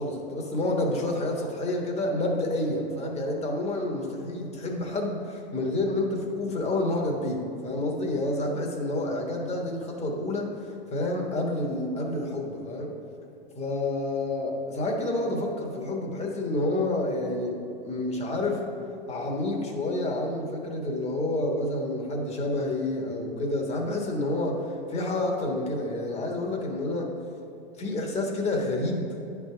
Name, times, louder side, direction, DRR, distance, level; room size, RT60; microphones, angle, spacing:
voice 1, 0.0-12.9 13.5-18.6 19.1-24.6 24.9-27.1 27.8-29.1, left 2 dB, 20° left, 0 dB, 1.3 m, -29 dB
9.8 x 3.6 x 5.7 m, 2.8 s
hypercardioid pair, 105°, 30 cm